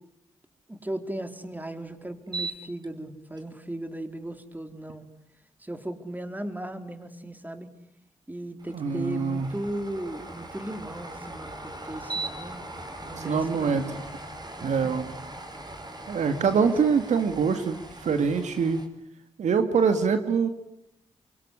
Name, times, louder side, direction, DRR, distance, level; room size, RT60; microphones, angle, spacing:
voice 1, 0.7-5.0 5.6-7.7 8.3-12.6 13.0-14.0 14.6-15.0 16.3-16.7, right 1 dB, 15° right, 8 dB, 3.9 m, -37 dB
sound 1, 2.3-2.9 3.4-3.5 8.6-18.9, right 2 dB, 35° right, 4.9 m, -40 dB
voice 2, 8.7-9.5 13.2-14.0 14.6-15.1 16.1-18.8 19.4-20.5, right 5 dB, 75° right, 9 dB, 2.1 m, -24 dB
24.5 x 24.0 x 9.9 m, 0.80 s
supercardioid pair, 45°, 12 cm